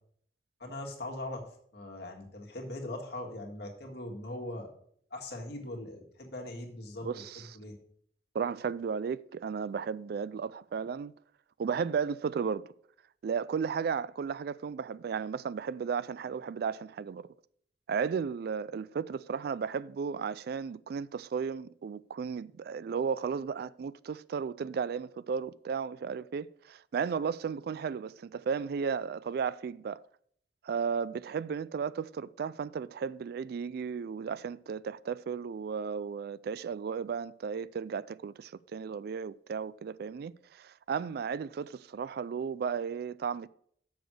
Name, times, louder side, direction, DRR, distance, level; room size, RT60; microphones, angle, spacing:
voice 1, 0.6-4.7 5.1-7.7, left 1 dB, 65° left, 1.8 m, -41 dB
voice 2, 7.0-7.4 8.3-11.1 11.6-12.7 13.2-17.3 17.9-30.0 30.6-43.5, right 6 dB, 60° right, 0.3 m, -34 dB
7.1 x 6.2 x 6.1 m
head